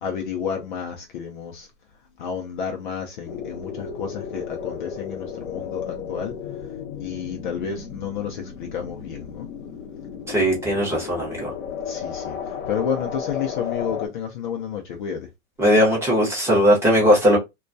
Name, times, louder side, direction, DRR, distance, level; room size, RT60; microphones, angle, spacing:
voice 1, 0.0-1.7 2.2-6.3 7.0-9.5 11.8-12.4 12.7-15.3, left 7 dB, 40° left, 0.5 m, -30 dB
sound 1, 3.2-14.1, left 7 dB, 75° left, 0.9 m, -34 dB
voice 2, 10.3-11.5 15.6-17.4, equal, 5° right, 0.7 m, -18 dB
2.2 x 2.1 x 2.5 m
hypercardioid pair, 140°, 38 cm